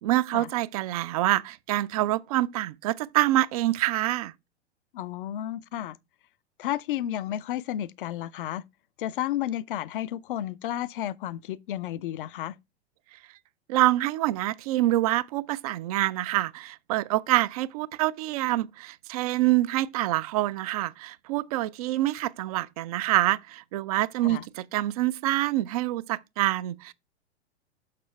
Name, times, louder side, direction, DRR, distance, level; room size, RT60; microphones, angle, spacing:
voice 1, 0.0-4.3 13.7-26.9, right 16 dB, 35° right, 0.4 m, -26 dB
voice 2, 4.9-6.0 6.6-8.6 9.0-12.5 24.2-24.4, left 12 dB, 50° left, 0.5 m, -32 dB
6.6 x 6.2 x 3.3 m
figure-of-eight pair, 100°, 34 cm